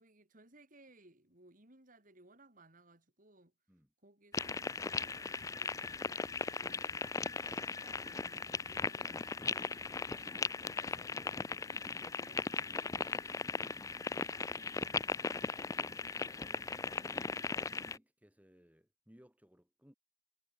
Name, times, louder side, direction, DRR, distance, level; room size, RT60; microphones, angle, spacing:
voice 1, 0.0-3.5 4.0-14.8, right 1 dB, 45° right, 5.1 m, -64 dB
sound 1, 4.3-18.0, left 4 dB, 15° left, 0.3 m, -38 dB
voice 2, 15.2-19.9, equal, 10° right, 3.8 m, -64 dB
head